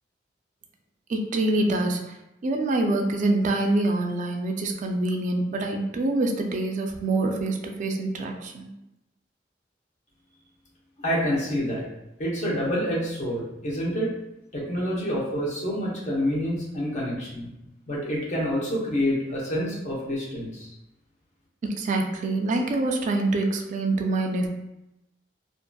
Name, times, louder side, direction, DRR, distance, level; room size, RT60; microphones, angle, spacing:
voice 1, 1.1-2.0 2.4-8.7 21.8-24.5, right 2 dB, 45° right, 3 dB, 0.3 m, -25 dB
voice 2, 11.0-11.8 12.2-14.1 14.5-17.5 17.9-20.7, equal, 40° left, -4 dB, 0.8 m, -27 dB
2.6 x 2.4 x 2.2 m, 0.91 s
head